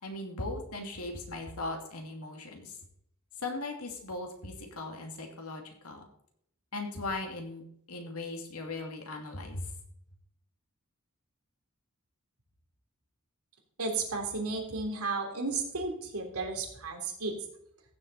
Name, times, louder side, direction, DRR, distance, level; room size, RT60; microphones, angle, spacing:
voice 1, 0.0-2.8 3.4-6.1 6.7-7.6 7.9-9.7, left 2 dB, 90° left, 3 dB, 2.7 m, -38 dB
voice 2, 13.8-17.3, right 3 dB, 85° right, 1 dB, 3.3 m, -33 dB
15.0 x 7.9 x 4.2 m, 0.72 s
head